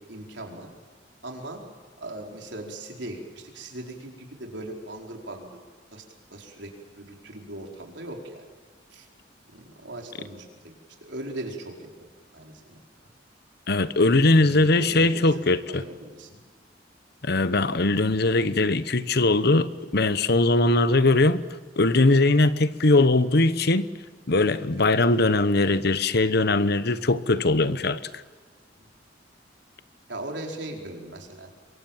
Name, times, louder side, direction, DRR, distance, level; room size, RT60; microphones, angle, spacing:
voice 1, 0.1-0.7 1.2-1.6 2.0-5.5 5.9-6.0 6.3-8.5 8.9-9.1 9.5-10.7 11.0-11.9 12.3-13.1 14.0-16.4 24.8-24.9 28.8-28.9 30.1-31.5, right 1 dB, 70° right, 2 dB, 4.8 m, -39 dB
voice 2, 13.7-15.8 17.2-21.4 21.8-23.9 24.3-28.0, left 2 dB, 60° left, 14 dB, 1.1 m, -21 dB
27.0 x 23.5 x 7.4 m, 1.5 s
head